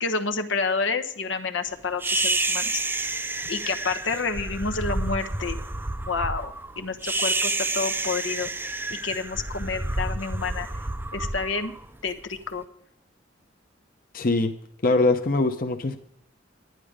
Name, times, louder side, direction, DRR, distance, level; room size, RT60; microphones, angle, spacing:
voice 1, 0.0-2.8 3.5-5.6 6.1-8.5 8.9-10.7 11.1-11.7 12.0-12.6, left 4 dB, 85° left, 7 dB, 1.1 m, -29 dB
sound 1, 2.0-12.4, right 2 dB, 10° right, 0.5 m, -29 dB
voice 2, 14.1-14.5 14.8-16.0, left 2 dB, 50° left, 6 dB, 0.8 m, -22 dB
10.5 x 10.5 x 5.0 m, 0.72 s
head